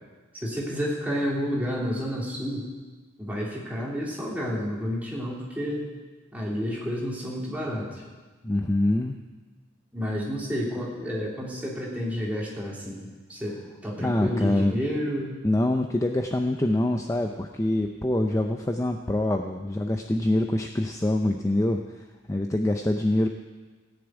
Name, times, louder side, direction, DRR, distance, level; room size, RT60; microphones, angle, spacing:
voice 1, 0.3-2.7 3.2-5.9 6.3-8.0 9.9-13.6 13.8-15.4, equal, 10° right, -5 dB, 3.1 m, -30 dB
voice 2, 8.4-9.2 14.0-14.8 15.4-21.8 22.3-23.3, left 1 dB, 15° left, 4 dB, 0.5 m, -25 dB
16.5 x 7.0 x 9.0 m, 1.3 s
head